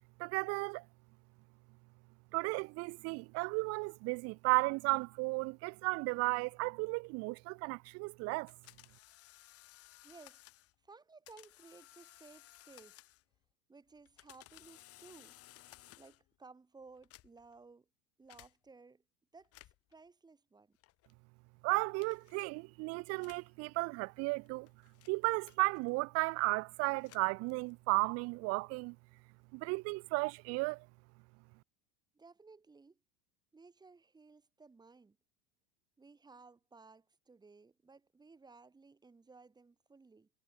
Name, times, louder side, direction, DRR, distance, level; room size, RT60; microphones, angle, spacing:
voice 1, 0.2-0.8 2.3-8.5 21.6-24.7 25.1-29.0 29.5-30.9, right 27 dB, 40° right, 0.6 m, -34 dB
sound 1, 8.5-10.7 11.3-13.4 13.9-16.3 16.9-17.6 18.3-18.5 19.4-19.9 20.8-21.2 22.0-22.4 23.2-23.5 24.3-26.1 26.8-27.9, left 16 dB, 40° left, 3.9 m, -59 dB
voice 2, 10.0-10.5 10.8-13.0 13.7-15.4 15.9-17.9 18.2-19.0 19.3-20.8 32.1-33.0 33.5-35.2 36.0-40.3, right 4 dB, 10° right, 3.9 m, -58 dB
supercardioid pair, 155°, 38 cm